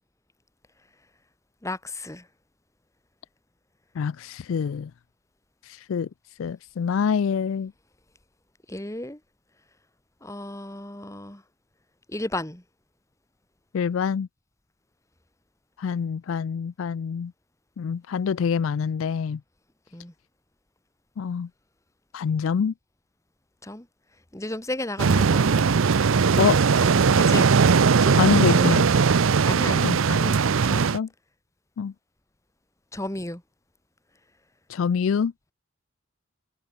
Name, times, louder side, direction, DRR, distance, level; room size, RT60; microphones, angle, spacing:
voice 1, 1.6-2.2 8.7-9.2 10.2-11.4 12.1-12.6 19.9-20.1 23.6-23.8 24.3-25.7 26.8-26.9 27.2-27.5 28.0-28.8 29.4-30.9 32.9-33.4, left 1 dB, 15° left, 1.6 m, -34 dB
voice 2, 4.0-4.9 5.7-6.1 6.4-7.7 13.7-14.3 15.8-17.3 17.8-19.4 21.2-21.5 22.1-22.7 26.4-26.6 28.2-28.9 29.8-30.0 30.9-31.1 31.8-31.9 34.7-35.3, left 6 dB, 70° left, 0.4 m, -25 dB
sound 1, 25.0-31.0, right 5 dB, 70° right, 0.5 m, -19 dB
head